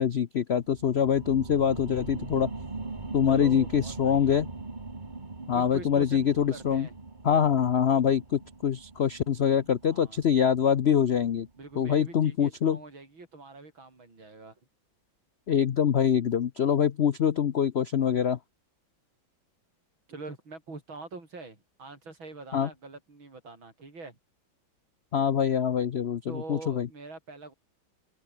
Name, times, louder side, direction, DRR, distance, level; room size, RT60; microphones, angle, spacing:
voice 1, 0.0-2.5 3.1-4.5 5.5-6.9 7.2-11.5 11.8-12.8 15.5-18.4 22.5-22.7 25.1-26.9, left 8 dB, 85° left, 0.5 m, -24 dB
sound 1, 0.6-11.8 12.2-12.3, right 3 dB, 25° right, 2.0 m, -41 dB
voice 2, 3.3-4.4 5.5-6.9 9.8-10.2 11.6-14.6 20.1-24.2 26.3-27.5, right 3 dB, 85° right, 6.3 m, -44 dB
open air
omnidirectional pair, 2.1 m